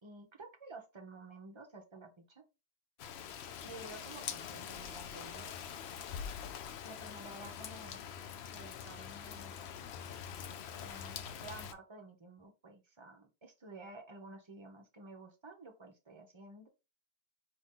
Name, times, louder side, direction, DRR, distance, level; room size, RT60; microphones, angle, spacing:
voice 1, 0.0-2.4 3.6-5.6 6.8-8.0 8.5-9.5 10.8-16.7, right 2 dB, 30° right, 3 dB, 0.5 m, -52 dB
Rain, 3.0-11.7, left 8 dB, 75° left, 0.5 m, -44 dB
4.5 x 2.7 x 3.7 m, 0.28 s
omnidirectional pair, 1.7 m